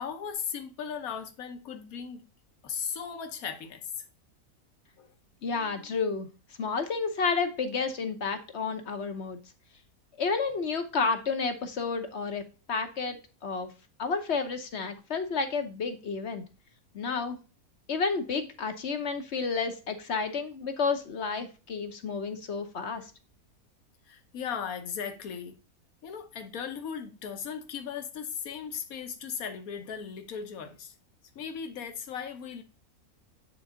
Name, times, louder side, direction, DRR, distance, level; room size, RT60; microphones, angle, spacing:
voice 1, 0.0-2.2 2.6-4.1 5.0-5.1 5.5-5.9 13.1-13.2 24.1-25.6 26.0-30.9 31.3-32.6, left 7 dB, 75° left, 1.4 m, -37 dB
voice 2, 5.4-6.3 6.6-9.4 10.2-12.4 12.7-13.7 14.0-16.4 16.9-17.4 17.9-23.0, left 4 dB, 55° left, 1.0 m, -31 dB
9.0 x 4.0 x 3.7 m
omnidirectional pair, 1.6 m